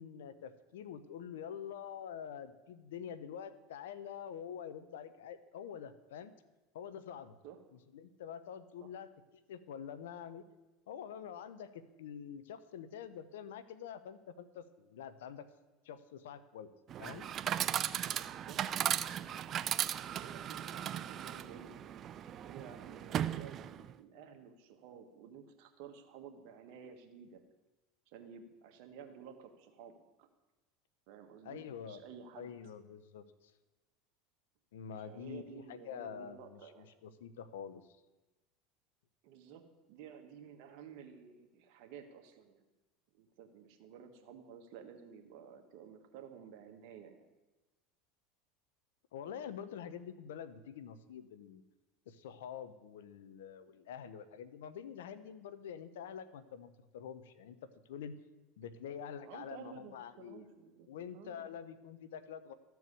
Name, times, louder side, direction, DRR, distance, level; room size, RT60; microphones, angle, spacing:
voice 1, 0.0-6.3 6.7-7.4 7.9-9.1 9.5-10.5 10.9-15.5 15.8-16.7 17.0-17.3 31.4-32.0 32.4-33.5 34.7-37.8 49.1-51.6 52.1-57.6 57.9-58.2 58.6-60.5 60.9-62.5, left 8 dB, 90° left, 13 dB, 0.8 m, -46 dB
Chatter / Coin (dropping), 16.9-23.9, right 10 dB, 40° right, 0.4 m, -37 dB
voice 2, 19.9-21.7 22.4-27.4 28.1-30.3 31.1-32.5 34.9-36.9 39.2-39.6 39.9-42.6 43.1-47.3 59.2-60.9 61.1-61.5, right 7 dB, 65° right, 5 dB, 1.5 m, -53 dB
13.5 x 4.7 x 8.2 m, 1.1 s
supercardioid pair, 105°, 0 cm